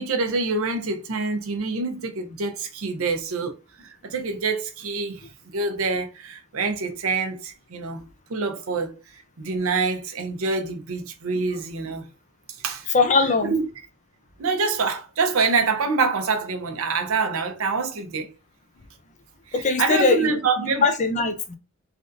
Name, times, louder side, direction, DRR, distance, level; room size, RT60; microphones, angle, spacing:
voice 1, 0.0-5.2 5.5-8.0 8.3-8.9 9.4-12.0 12.6-12.9 13.4-13.7 14.4-18.3 19.8-20.8, right 4 dB, 80° right, 0.6 m, -26 dB
voice 2, 12.9-13.5 19.5-20.4 20.8-21.6, left 3 dB, 35° left, 0.5 m, -20 dB
3.4 x 2.5 x 2.5 m
head